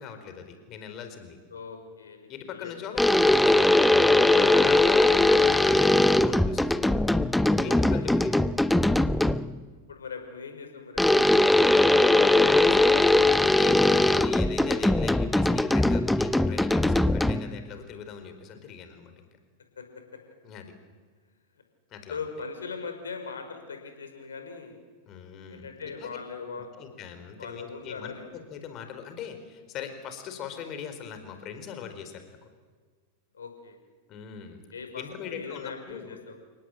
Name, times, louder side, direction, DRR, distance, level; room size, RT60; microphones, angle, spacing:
voice 1, 0.0-1.4 2.3-7.0 7.6-8.4 12.3-19.3 20.4-20.7 21.9-22.2 25.1-26.2 26.8-32.4 34.1-34.6 35.0-36.2, left 8 dB, 40° left, 8 dB, 4.5 m, -40 dB
voice 2, 1.5-2.7 7.7-8.1 9.9-11.3 19.8-19.9 20.1-20.2 22.1-24.8 25.5-26.7 27.4-28.3 33.3-33.8 34.7-36.4, left 5 dB, 75° left, 6 dB, 5.5 m, -40 dB
sound 1, 3.0-9.6 11.0-17.6, left 2 dB, 5° left, 0.7 m, -21 dB
29.5 x 18.5 x 9.2 m, 1.5 s
figure-of-eight pair, 90°, 0 cm